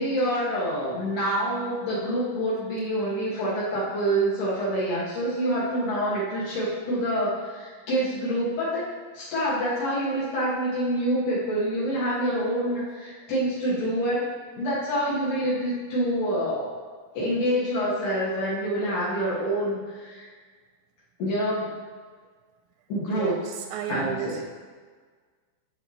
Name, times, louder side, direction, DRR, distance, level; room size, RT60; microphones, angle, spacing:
voice 1, 0.0-14.3 14.6-16.7 17.2-20.3 21.2-21.7 22.9-23.4 23.9-24.4, right 1 dB, 60° left, -9 dB, 3.8 m, -26 dB
voice 2, 23.7-24.4, right 9 dB, 85° right, 5 dB, 2.9 m, -33 dB
15.0 x 6.6 x 3.2 m, 1.5 s
omnidirectional pair, 5.6 m